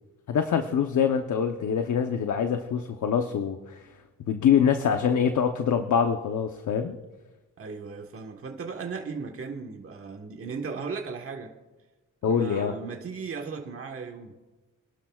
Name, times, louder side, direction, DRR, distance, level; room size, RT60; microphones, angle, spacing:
voice 1, 0.3-3.8 4.3-7.0 12.2-12.7, left 7 dB, 65° left, 6 dB, 0.9 m, -24 dB
voice 2, 7.6-11.5 12.3-14.3, right 5 dB, 45° right, 2 dB, 1.4 m, -36 dB
26.5 x 12.0 x 2.4 m, 1.2 s
cardioid pair, 105°, 32 cm